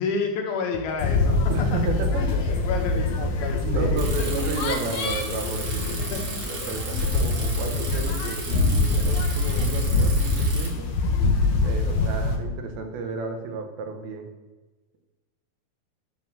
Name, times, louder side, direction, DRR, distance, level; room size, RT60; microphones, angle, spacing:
voice 1, 0.0-1.8 2.2-4.3 6.1-6.3, left 5 dB, 90° left, 2 dB, 3.2 m, -30 dB
sound 1, 0.7-9.0, left 2 dB, 50° left, 2.1 m, -38 dB
sound 2, 1.0-12.4, left 3 dB, 70° left, 1.6 m, -24 dB
voice 2, 1.5-2.3 3.1-3.2 3.6-10.9 11.6-14.3, right 4 dB, 85° right, 5 dB, 3.0 m, -32 dB
Bicycle, 4.0-10.7, right 3 dB, 45° right, 1.8 m, -36 dB
11.5 x 4.7 x 6.8 m, 1.2 s
omnidirectional pair, 4.2 m